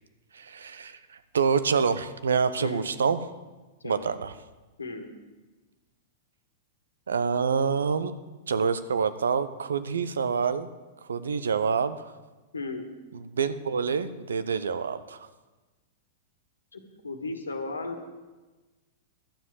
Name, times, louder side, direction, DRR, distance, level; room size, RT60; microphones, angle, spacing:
voice 1, 0.3-3.2 3.8-4.3 7.1-8.1 8.5-10.7 11.1-12.1 13.1-15.3, right 6 dB, 75° right, 12 dB, 0.7 m, -27 dB
voice 2, 12.5-12.9 16.7-18.1, left 3 dB, 85° left, 5 dB, 1.7 m, -35 dB
12.0 x 7.3 x 8.2 m, 1.2 s
figure-of-eight pair, 100°, 0 cm